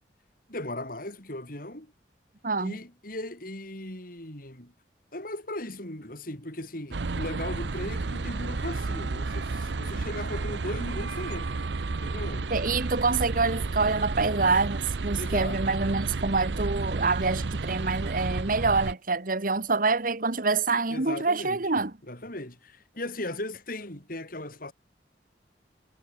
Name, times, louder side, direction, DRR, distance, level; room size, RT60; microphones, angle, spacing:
voice 1, 0.5-1.9 2.6-4.7 5.1-11.6 11.9-12.5 15.1-15.8 20.9-24.7, left 1 dB, 50° left, 6.4 m, -37 dB
voice 2, 2.4-2.7 12.5-21.9, right 3 dB, 50° right, 1.5 m, -26 dB
sound 1, 6.9-18.9, right 3 dB, 80° right, 0.7 m, -31 dB
head